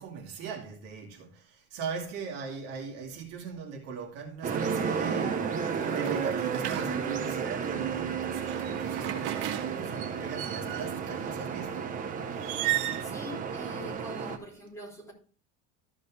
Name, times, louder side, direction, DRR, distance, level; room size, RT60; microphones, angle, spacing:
voice 1, 0.0-11.9, right 6 dB, 50° right, 2.6 m, -40 dB
sound 1, 4.4-14.4, right 6 dB, 25° right, 1.0 m, -32 dB
sound 2, 5.7-7.4 8.3-11.1 12.4-13.0, right 13 dB, 80° right, 1.6 m, -35 dB
voice 2, 13.0-15.1, left 1 dB, 10° left, 3.5 m, -44 dB
14.0 x 5.2 x 3.4 m
cardioid pair, 165°, 33 cm